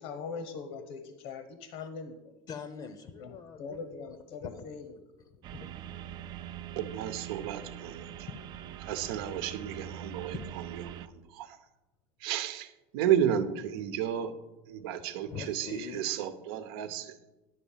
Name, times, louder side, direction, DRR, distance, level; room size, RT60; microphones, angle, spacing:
voice 1, 0.0-2.3 3.2-4.9, left 5 dB, 70° left, 8 dB, 1.0 m, -41 dB
voice 2, 2.5-4.7 5.3-6.1 8.3-8.7 14.8-16.1, left 6 dB, 35° left, 10 dB, 0.7 m, -45 dB
sound 1, 5.4-11.1, right 11 dB, 35° right, 0.4 m, -43 dB
voice 3, 6.8-8.3 8.8-10.4 10.7-10.8 11.1-11.6 12.2-14.3 14.7-17.2, right 10 dB, 80° right, 10 dB, 0.9 m, -32 dB
10.5 x 4.1 x 7.3 m, 1.0 s
supercardioid pair, 145°, 12 cm